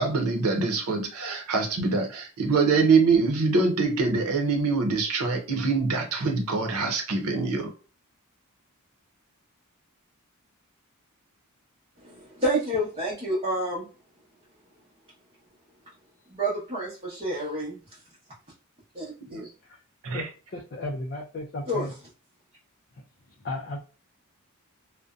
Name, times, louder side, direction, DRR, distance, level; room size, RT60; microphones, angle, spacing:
voice 1, 0.0-7.7 19.3-19.4 20.0-20.3, right 4 dB, 85° right, 0.7 m, -24 dB
voice 2, 12.0-13.9 16.3-17.8 18.9-19.5 21.7-21.8, right 1 dB, 25° right, 0.9 m, -29 dB
voice 3, 20.1-21.9 23.4-23.8, left 2 dB, 45° left, 0.4 m, -35 dB
2.5 x 2.1 x 2.3 m
head